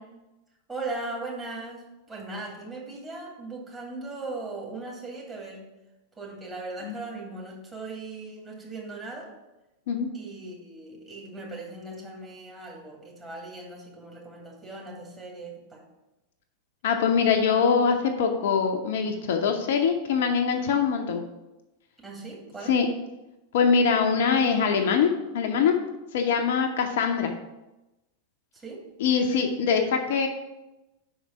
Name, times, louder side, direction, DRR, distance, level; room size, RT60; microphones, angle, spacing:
voice 1, 0.7-5.6 6.2-9.3 10.1-15.8 22.0-22.8 28.5-28.8, right 3 dB, 15° right, -3 dB, 2.3 m, -38 dB
voice 2, 16.8-21.2 22.7-22.9 23.5-25.8 26.1-27.3 29.0-30.3, left 6 dB, 55° left, 4 dB, 0.6 m, -23 dB
5.7 x 4.7 x 5.7 m, 0.99 s
figure-of-eight pair, 90°, 0 cm